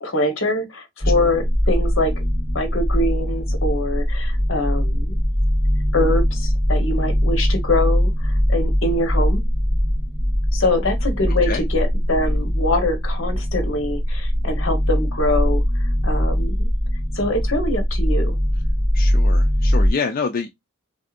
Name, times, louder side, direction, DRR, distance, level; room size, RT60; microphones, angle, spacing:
voice 1, 0.0-2.1 2.5-5.1 5.9-9.4 10.5-15.6 16.0-16.7 17.1-18.4, left 2 dB, 70° left, 1.0 m, -24 dB
sound 1, 1.0-19.9, equal, 20° right, 1.7 m, -21 dB
voice 2, 18.9-20.5, left 5 dB, 50° left, 0.4 m, -26 dB
3.4 x 2.6 x 2.4 m
head